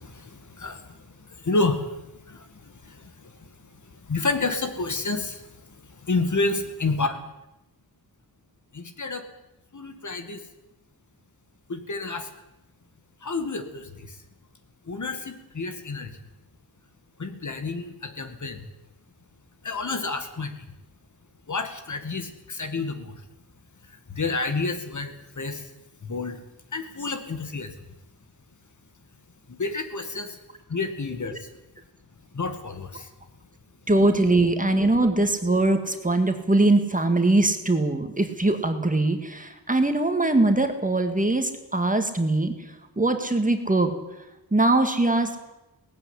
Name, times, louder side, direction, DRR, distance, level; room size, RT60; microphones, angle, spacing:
voice 1, 0.0-3.5 4.1-5.5 5.9-7.2 8.7-9.2 9.7-10.4 11.7-12.3 13.2-14.2 14.9-16.1 17.2-18.7 19.6-20.5 21.5-23.1 24.1-25.7 26.0-26.4 26.7-27.7 29.5-30.4 30.7-31.5 32.3-33.1, left 3 dB, 45° left, 7 dB, 2.2 m, -30 dB
voice 2, 33.9-42.5 43.0-43.9 44.5-45.3, right 2 dB, 20° right, 6 dB, 2.0 m, -22 dB
18.5 x 15.0 x 9.9 m, 0.95 s
wide cardioid pair, 140°, 39 cm